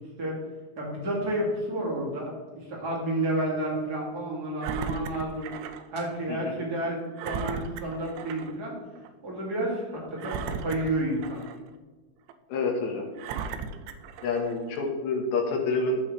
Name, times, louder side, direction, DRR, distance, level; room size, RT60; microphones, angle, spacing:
voice 1, 0.8-5.5 5.9-8.7 9.2-11.4, right 1 dB, 30° right, -4 dB, 2.3 m, -30 dB
Engine, 4.6-5.9 6.3-6.4 7.2-8.6 9.0-9.1 10.2-11.7 12.3-12.4 13.2-14.6 15.3-15.4, right 6 dB, 85° right, 2.9 m, -36 dB
voice 2, 12.5-13.1 14.2-16.0, left 3 dB, 75° left, 0 dB, 3.6 m, -28 dB
14.5 x 5.5 x 3.3 m, 1.4 s
omnidirectional pair, 5.3 m